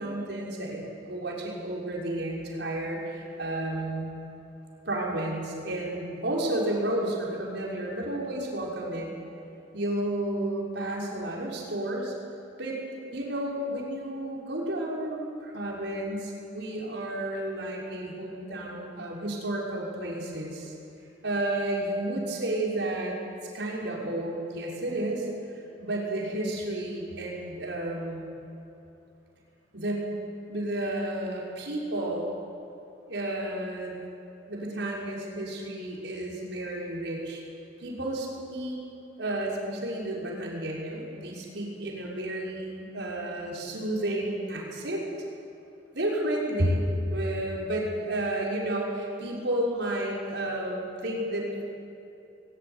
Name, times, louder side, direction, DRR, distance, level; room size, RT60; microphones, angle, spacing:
voice 1, 0.0-4.1 4.8-9.1 9.7-12.1 12.6-12.8 13.1-20.7 21.2-23.2 23.5-28.3 29.7-30.1 30.5-32.3 33.1-34.0 34.5-37.4 37.8-38.8 39.2-45.0 45.9-46.8 47.1-51.6, right 1 dB, 75° right, -3 dB, 6.0 m, -31 dB
22.0 x 21.5 x 9.8 m, 2.8 s
head